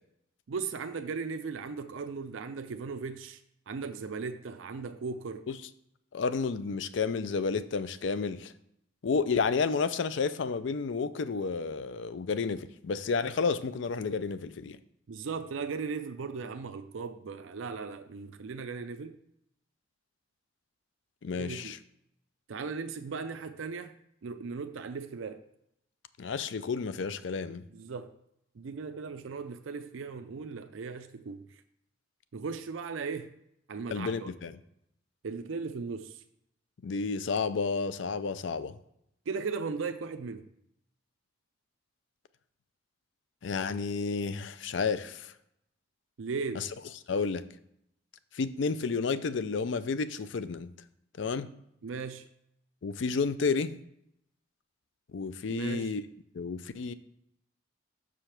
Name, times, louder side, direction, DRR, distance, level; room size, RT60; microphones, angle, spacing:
voice 1, 0.5-3.4 3.7-5.4 15.1-19.2 21.3-21.7 22.5-23.9 24.2-25.4 27.7-28.1 28.6-31.5 32.3-33.3 33.7-34.3 35.2-36.2 39.3-40.4 46.2-46.6 51.8-52.3 55.5-55.9, right 5 dB, 80° right, 0.5 m, -37 dB
voice 2, 6.1-8.5 9.0-14.8 21.2-21.8 26.2-27.7 33.9-34.5 36.8-38.8 43.4-45.3 46.5-46.7 47.1-47.4 48.3-50.7 51.2-51.5 52.8-53.7 55.1-56.0 56.3-56.9, left 4 dB, 70° left, 0.4 m, -31 dB
6.6 x 5.0 x 5.8 m
head